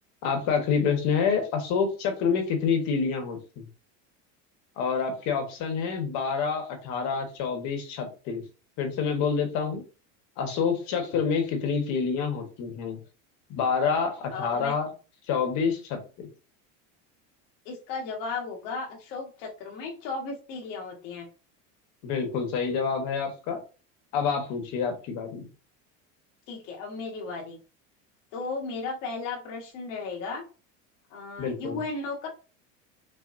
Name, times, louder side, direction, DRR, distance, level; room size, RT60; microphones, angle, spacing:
voice 1, 0.2-3.6 4.8-8.4 8.8-9.8 10.4-13.0 13.5-14.9 15.3-16.0 22.0-23.6 24.1-25.5 31.4-31.8, left 6 dB, 50° left, 4 dB, 1.3 m, -27 dB
voice 2, 14.3-14.7 17.7-21.3 26.5-27.6 28.3-30.4 31.1-32.3, left 4 dB, 80° left, 0 dB, 1.7 m, -35 dB
5.8 x 2.3 x 2.6 m, 0.35 s
supercardioid pair, 150°, 36 cm